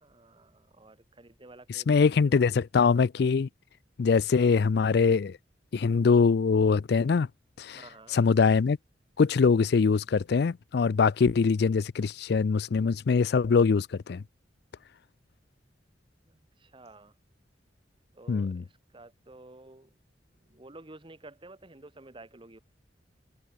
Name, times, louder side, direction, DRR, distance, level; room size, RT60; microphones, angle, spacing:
voice 1, 0.0-2.6 4.3-4.6 7.7-8.2 16.3-17.1 18.1-19.9 20.4-22.6, right 2 dB, 30° right, 1.5 m, -51 dB
voice 2, 1.7-3.5 4.0-5.4 5.7-7.3 7.6-7.8 8.1-8.8 9.2-14.2 18.3-18.6, left 5 dB, 60° left, 0.4 m, -23 dB
head